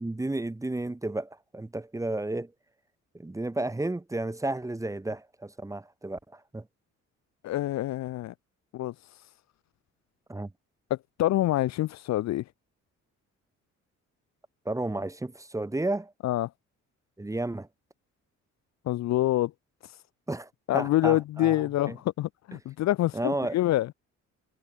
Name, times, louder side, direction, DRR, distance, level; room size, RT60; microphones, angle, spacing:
voice 1, 0.0-2.5 3.1-6.6 10.3-10.5 14.6-16.1 17.2-17.7 20.3-21.6 21.9-22.0 23.1-23.5, right 2 dB, 10° right, 1.1 m, -32 dB
voice 2, 7.4-8.3 8.7-8.9 11.2-12.4 16.2-16.5 18.9-19.5 20.7-23.9, left 14 dB, 60° left, 0.5 m, -26 dB
cardioid pair, 90°, 30 cm